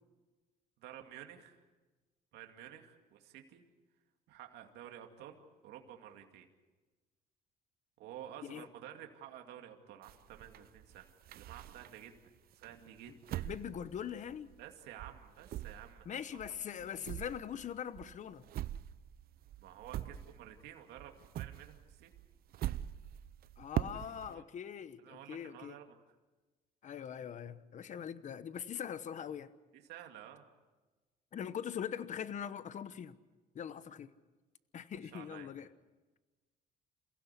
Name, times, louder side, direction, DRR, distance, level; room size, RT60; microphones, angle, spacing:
voice 1, 0.8-1.6 2.3-3.6 4.3-6.5 8.0-12.1 12.6-13.5 14.6-16.0 16.8-16.9 19.6-22.1 24.2-24.4 25.0-26.0 29.7-30.5 35.0-35.5, right 10 dB, 80° right, 4 dB, 2.4 m, -51 dB
sound 1, 10.0-12.2 12.6-14.7 15.0-20.7 21.0-24.3, right 13 dB, 60° right, 0.7 m, -43 dB
voice 2, 13.4-14.5 16.0-18.4 23.6-25.8 26.8-29.5 31.3-33.1 33.5-34.1 34.7-35.7, left 8 dB, 45° left, 14 dB, 1.1 m, -42 dB
28.5 x 16.0 x 8.4 m, 1.2 s
cardioid pair, 110°, 17 cm